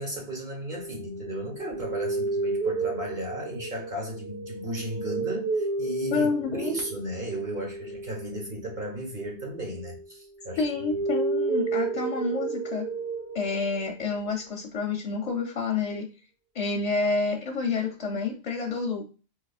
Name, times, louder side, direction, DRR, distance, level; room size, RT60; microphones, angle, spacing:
voice 1, 0.0-10.6 10.9-11.0, right 1 dB, 45° right, 1.1 m, -35 dB
sound 1, 0.7-10.1 10.4-14.2, right 3 dB, 60° right, 1.1 m, -32 dB
voice 2, 6.1-6.8 10.6-12.9 13.3-16.1 16.5-19.0, left 4 dB, 50° left, 0.5 m, -28 dB
4.0 x 2.7 x 2.3 m
omnidirectional pair, 1.2 m